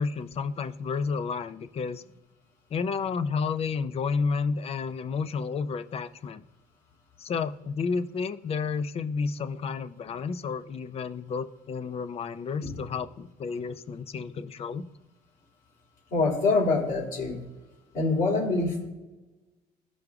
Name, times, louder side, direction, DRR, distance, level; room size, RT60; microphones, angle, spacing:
voice 1, 0.0-2.0 2.7-6.4 7.2-14.8, left 5 dB, 35° left, 12 dB, 0.5 m, -31 dB
voice 2, 16.1-17.4 17.9-18.9, left 3 dB, 55° left, -1 dB, 2.9 m, -25 dB
15.0 x 5.1 x 2.4 m, 1.1 s
cardioid pair, 110°, 17 cm